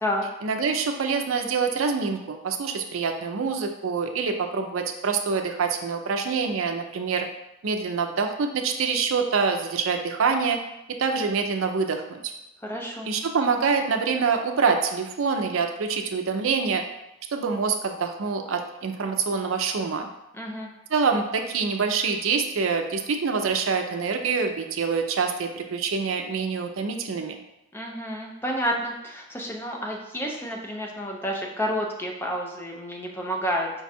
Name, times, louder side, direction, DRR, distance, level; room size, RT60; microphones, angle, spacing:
voice 1, 0.4-7.3 7.6-10.6 11.0-12.3 13.0-16.8 17.3-20.1 20.9-27.4, right 5 dB, 75° right, 5 dB, 0.5 m, -25 dB
voice 2, 12.6-13.1 20.3-20.7 27.7-33.8, equal, 10° left, 0 dB, 0.5 m, -30 dB
5.1 x 2.3 x 4.1 m, 0.88 s
head